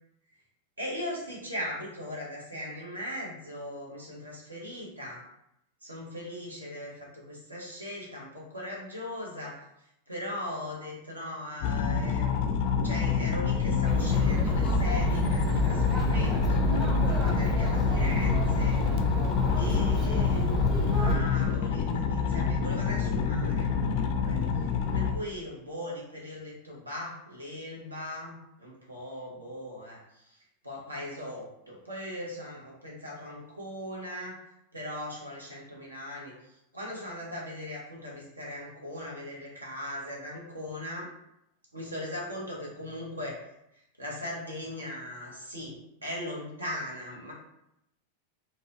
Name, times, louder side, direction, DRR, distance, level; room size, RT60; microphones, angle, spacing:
voice 1, 0.8-5.2 5.8-9.6 10.1-12.6 12.8-16.7 16.9-18.8 19.5-20.5 20.9-24.4 24.9-34.4 34.7-41.1 41.7-43.4 44.0-47.3, left 1 dB, 80° right, -3 dB, 0.8 m, -39 dB
sound 1, 11.6-25.1, left 6 dB, 45° left, 0.3 m, -27 dB
Chatter, 13.9-21.2, equal, 20° right, 0.6 m, -28 dB
2.8 x 2.0 x 2.9 m, 0.80 s
figure-of-eight pair, 90°, 0 cm